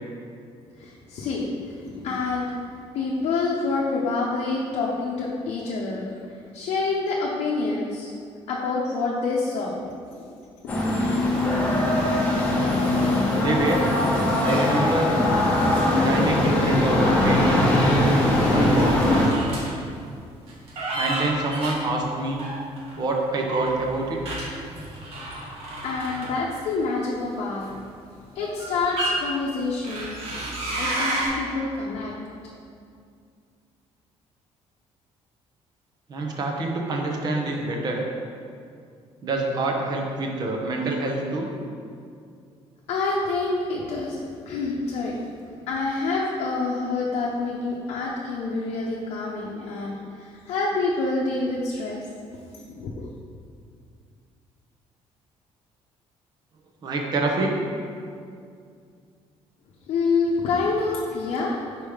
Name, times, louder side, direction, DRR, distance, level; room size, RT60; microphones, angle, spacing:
voice 1, 0.8-2.7 2.9-6.1 6.5-8.1 8.5-10.3 10.6-10.9 11.2-11.5 25.2-25.4 25.8-27.7 28.3-30.1 30.8-32.1 42.9-45.2 45.6-52.0 52.6-53.1 59.9-61.6, left 3 dB, 65° left, -4 dB, 0.7 m, -27 dB
sound 1, 10.7-19.3, left 1 dB, 15° left, 1.0 m, -21 dB
voice 2, 13.4-13.8 14.4-15.2 16.0-17.7 18.5-19.4 20.9-22.4 23.0-24.2 36.1-38.0 39.2-41.5 56.8-57.6, right 2 dB, 40° right, 0 dB, 0.8 m, -26 dB
sound 2, 18.2-19.7 20.5-22.9 23.4-26.8 27.6-27.8 28.4-29.1 29.8-31.3, right 2 dB, 60° right, 1.5 m, -31 dB
5.2 x 4.6 x 4.9 m, 2.3 s
cardioid pair, 170°, 11 cm